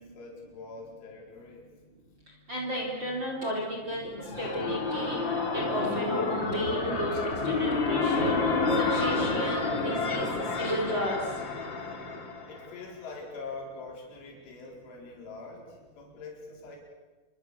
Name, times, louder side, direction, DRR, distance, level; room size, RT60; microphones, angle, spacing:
voice 1, 0.0-1.7 12.5-16.8, left 3 dB, 80° left, -1 dB, 7.0 m, -44 dB
voice 2, 2.5-5.2 5.5-8.5 8.9-10.3 10.6-11.2, equal, 25° right, -1 dB, 4.5 m, -33 dB
sound 1, 3.9-12.7, left 3 dB, 30° left, 2.6 m, -29 dB
26.5 x 24.5 x 7.1 m, 1.2 s
omnidirectional pair, 5.4 m